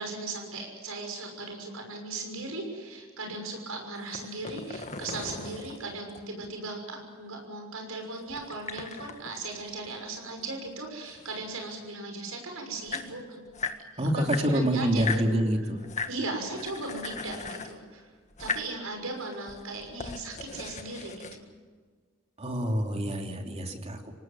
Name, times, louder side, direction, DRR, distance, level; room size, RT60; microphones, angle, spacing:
voice 1, 0.0-13.4 14.1-15.4 16.1-18.1 18.4-21.4, right 2 dB, 85° right, 3 dB, 6.2 m, -37 dB
sound 1, 4.0-6.5 8.3-10.4 10.6-11.9 12.5-12.6 12.7-13.8 14.2-15.3 15.8-16.2 16.5-17.8 18.3-18.7 19.2-21.4, left 4 dB, 35° left, 1.7 m, -38 dB
voice 2, 14.0-15.8 22.4-24.1, right 1 dB, 30° right, 3 dB, 2.9 m, -27 dB
26.5 x 18.5 x 7.7 m, 1.5 s
head